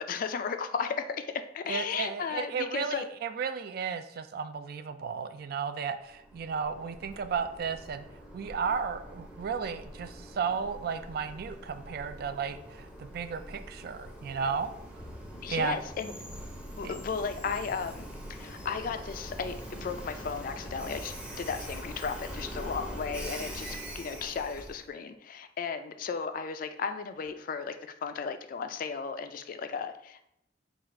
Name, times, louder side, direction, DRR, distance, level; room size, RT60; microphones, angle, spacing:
voice 1, 0.0-3.0 15.4-16.1 16.8-30.3, left 5 dB, 50° left, 9 dB, 0.3 m, -35 dB
voice 2, 1.7-8.1 8.3-14.7 15.5-15.8 16.8-16.9, right 6 dB, 55° right, 10 dB, 0.3 m, -34 dB
Train, 6.1-24.9, equal, 5° right, 0.6 m, -43 dB
4.0 x 2.4 x 4.3 m, 0.76 s
head